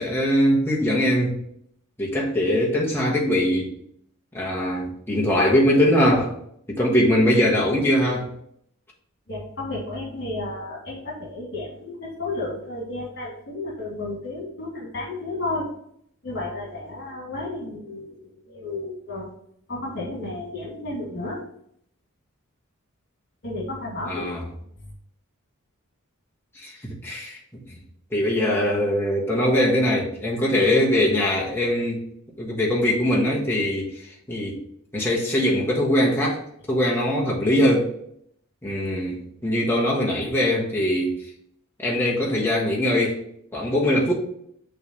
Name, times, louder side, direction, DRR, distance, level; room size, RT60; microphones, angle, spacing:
voice 1, 0.0-1.4 2.0-3.7 4.3-6.3 6.7-8.3 24.1-24.4 26.6-27.6 28.1-32.0 32.4-33.9 34.3-34.6 34.9-36.4 36.7-37.9 38.6-41.1 41.8-43.2 43.5-44.1, left 1 dB, 10° left, -4 dB, 1.3 m, -21 dB
voice 2, 9.3-15.7 16.2-19.3 19.7-21.4 23.4-24.2 24.8-24.9, left 2 dB, 50° left, -5 dB, 2.4 m, -32 dB
6.1 x 3.3 x 5.2 m, 0.69 s
head